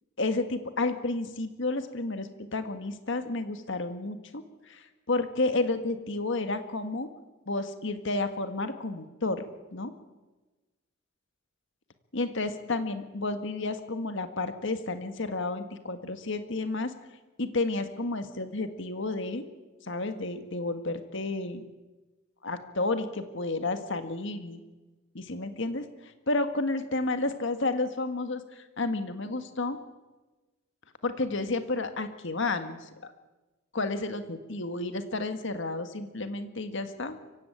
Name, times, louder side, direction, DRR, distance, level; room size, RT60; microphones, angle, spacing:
voice 1, 0.2-7.1 7.5-9.4 9.7-9.9 12.1-16.9 17.4-19.4 19.8-21.6 22.4-24.6 25.1-29.8 31.0-33.1 33.7-37.2, left 2 dB, 65° left, 8 dB, 1.8 m, -31 dB
24.0 x 16.0 x 9.0 m, 1.2 s
head